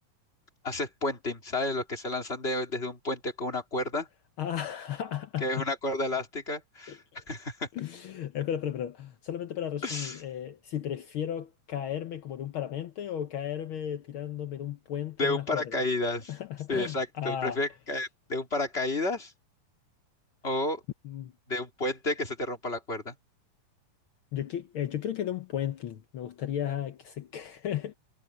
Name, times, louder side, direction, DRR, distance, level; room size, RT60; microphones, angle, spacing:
voice 1, 0.6-4.1 5.4-7.7 9.8-10.2 15.2-16.3 16.7-19.3 20.4-20.8 21.5-23.1, left 2 dB, 20° left, 3.2 m, -31 dB
voice 2, 4.4-5.6 6.9-7.2 7.7-15.8 16.3-17.6 21.0-21.3 24.3-27.9, left 10 dB, 85° left, 1.1 m, -34 dB
omnidirectional pair, 3.8 m